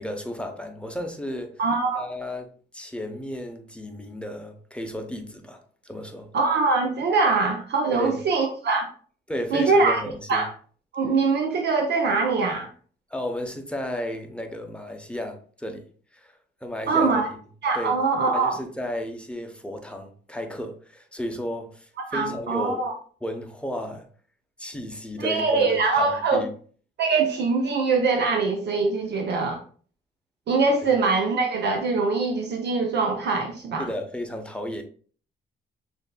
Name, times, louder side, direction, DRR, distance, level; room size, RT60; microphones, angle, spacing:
voice 1, 0.0-1.6 2.0-6.3 7.9-8.2 9.3-10.4 13.1-17.2 17.7-18.0 18.3-22.8 23.2-24.1 24.6-25.7 25.9-26.5 33.8-34.8, equal, 5° left, 0.8 m, -33 dB
voice 2, 1.6-2.1 6.3-8.9 9.5-10.0 10.3-10.5 10.9-12.7 16.9-17.3 17.6-18.6 22.1-22.9 25.2-26.4 27.0-29.6 30.5-33.9, right 4 dB, 60° right, 0.7 m, -23 dB
6.3 x 2.7 x 2.2 m
cardioid pair, 90°, 20 cm